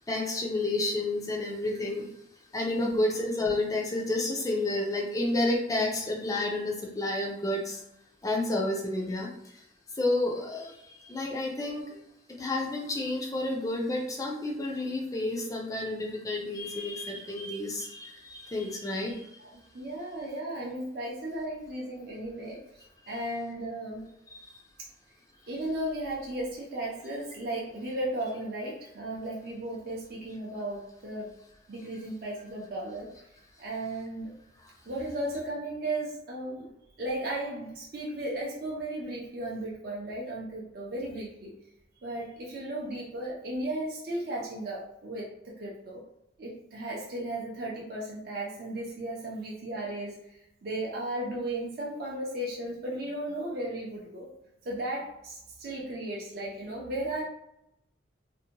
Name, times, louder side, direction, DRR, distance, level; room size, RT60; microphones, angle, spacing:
voice 1, 0.1-2.1 2.5-7.8 8.2-9.7 9.9-12.0 12.3-19.4 23.1-23.2 24.3-24.5 34.6-34.7, left 2 dB, 20° left, 0 dB, 0.3 m, -30 dB
voice 2, 2.6-3.0 19.1-22.6 23.1-24.0 25.5-31.3 31.7-33.1 33.6-34.3 34.9-36.7 37.0-41.5 42.0-46.0 46.4-54.3 54.6-57.2, right 1 dB, 50° right, -4 dB, 0.5 m, -35 dB
2.6 x 2.1 x 2.8 m, 0.82 s
head